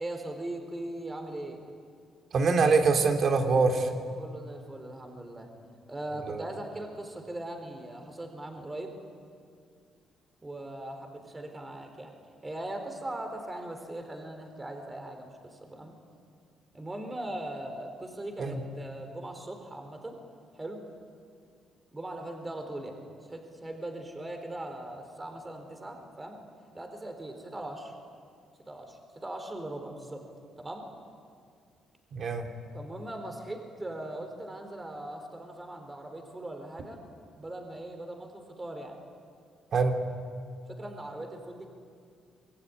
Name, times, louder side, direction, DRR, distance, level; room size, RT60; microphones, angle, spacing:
voice 1, 0.0-1.6 4.2-5.5 5.9-9.0 10.4-12.1 12.4-15.9 16.7-20.2 20.5-20.8 21.9-26.4 26.7-27.9 28.7-30.3 30.6-30.9 32.7-37.0 37.4-39.0 40.7-41.7, right 1 dB, 20° right, 4 dB, 4.2 m, -40 dB
voice 2, 2.3-3.9 6.3-6.4 18.4-18.6 32.1-32.5 39.7-39.9, right 4 dB, 55° right, 5 dB, 3.3 m, -24 dB
27.0 x 21.5 x 9.8 m, 2.2 s
cardioid pair, 90°, 0 cm